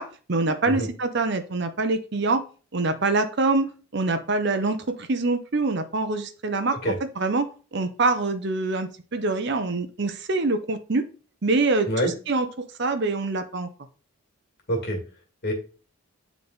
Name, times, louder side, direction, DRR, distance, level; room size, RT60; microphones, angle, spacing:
voice 1, 0.0-2.4 2.7-6.8 7.2-11.0 11.4-12.5 12.8-13.7, right 3 dB, 55° right, 8 dB, 0.7 m, -25 dB
voice 2, 14.7-15.0 15.4-15.5, equal, 50° left, 2 dB, 2.0 m, -26 dB
8.7 x 3.5 x 4.0 m, 0.38 s
head